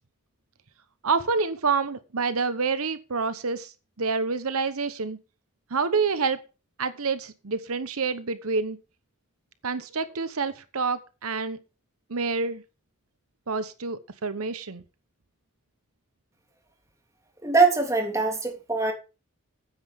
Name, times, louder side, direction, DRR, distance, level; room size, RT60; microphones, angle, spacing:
voice 1, 1.0-3.7 4.0-5.2 5.7-6.4 6.8-8.8 9.6-11.6 12.1-12.6 13.5-14.8, right 4 dB, 80° right, 1.0 m, -27 dB
voice 2, 17.4-18.9, right 4 dB, 15° right, 3.2 m, -22 dB
14.0 x 9.8 x 3.6 m
head